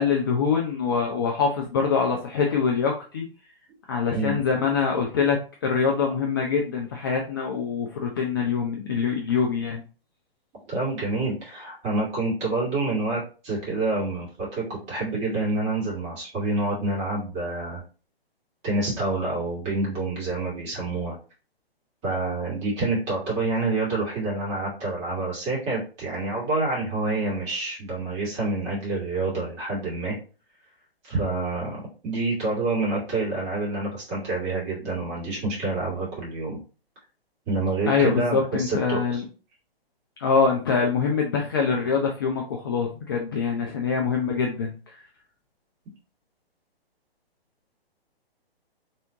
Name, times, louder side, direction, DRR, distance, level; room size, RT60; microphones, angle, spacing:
voice 1, 0.0-3.3 3.9-9.8 37.9-39.2 40.2-44.7, left 5 dB, 25° left, 0 dB, 0.4 m, -24 dB
voice 2, 10.7-17.8 18.6-21.2 22.0-30.2 31.0-36.6 37.5-39.2, right 2 dB, 25° right, -5 dB, 2.2 m, -27 dB
4.3 x 3.5 x 2.7 m, 0.35 s
figure-of-eight pair, 130°, 31 cm